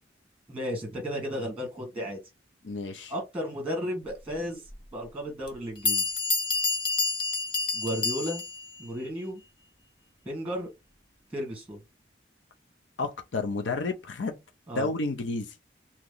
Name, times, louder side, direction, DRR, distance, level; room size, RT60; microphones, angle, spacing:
voice 1, 0.5-2.2 3.1-4.6 4.9-6.1 7.7-8.4 8.8-9.4 10.2-10.7 11.3-11.8 14.7-14.9, equal, 5° right, 1.3 m, -33 dB
voice 2, 2.6-3.1 13.0-14.4 14.7-15.5, left 3 dB, 85° left, 0.6 m, -31 dB
Bell, 4.7-4.8 5.5-5.6 5.9-8.7, left 3 dB, 25° left, 0.6 m, -28 dB
3.0 x 2.9 x 3.8 m
head